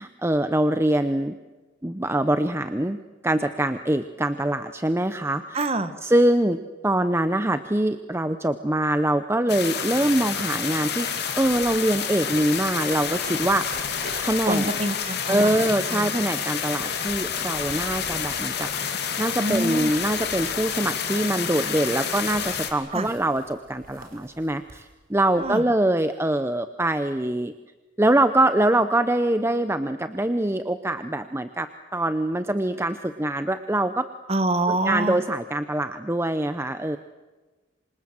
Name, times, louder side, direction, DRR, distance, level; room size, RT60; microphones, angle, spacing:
voice 1, 0.0-1.3 1.8-3.0 3.2-5.6 6.0-6.6 6.8-13.7 14.2-14.7 15.3-18.7 19.2-27.5 28.0-34.1 34.7-37.0, right 1 dB, 15° right, 10 dB, 0.8 m, -24 dB
voice 2, 5.5-5.9 14.5-15.6 15.9-16.1 19.4-19.9 22.9-23.1 25.4-25.6 34.3-35.2, right 2 dB, 30° right, 10 dB, 1.7 m, -26 dB
sound 1, 9.5-22.7, left 7 dB, 55° left, 3.1 m, -29 dB
sound 2, 11.1-25.5, right 2 dB, 50° right, 4.7 m, -47 dB
27.5 x 26.0 x 7.8 m, 1.2 s
head